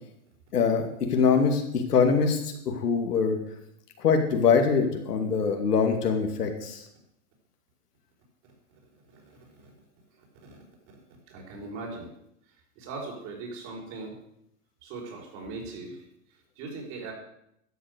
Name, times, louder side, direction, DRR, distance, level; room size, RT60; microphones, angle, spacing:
voice 1, 0.5-3.4 4.0-6.9, left 5 dB, 85° left, 4 dB, 2.5 m, -23 dB
voice 2, 8.9-9.7 10.1-12.1 12.4-14.2 14.8-17.1, right 3 dB, 40° right, -1 dB, 5.5 m, -41 dB
12.5 x 7.7 x 6.8 m, 0.76 s
hypercardioid pair, 135°, 45 cm